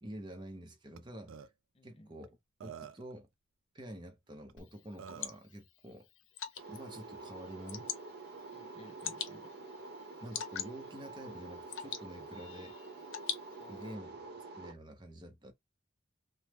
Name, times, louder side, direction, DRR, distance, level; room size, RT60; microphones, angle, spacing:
voice 1, 0.0-1.5 1.8-2.3 2.6-3.3 3.7-6.1 6.7-7.9 10.2-12.8 13.7-14.1 14.6-15.5, right 1 dB, 25° right, 0.6 m, -48 dB
Burping eructation, 1.0-1.1 1.3-1.5 2.2-2.3 2.6-3.1 4.5-4.6 5.0-5.4, right 7 dB, 90° right, 0.4 m, -47 dB
voice 2, 1.7-2.1 8.5-9.5 13.6-14.1, left 1 dB, 30° left, 0.6 m, -57 dB
Water / Drip, 4.6-13.9, left 9 dB, 90° left, 0.6 m, -45 dB
sound 1, 6.6-14.7, right 3 dB, 55° right, 0.8 m, -48 dB
3.1 x 2.0 x 3.2 m
head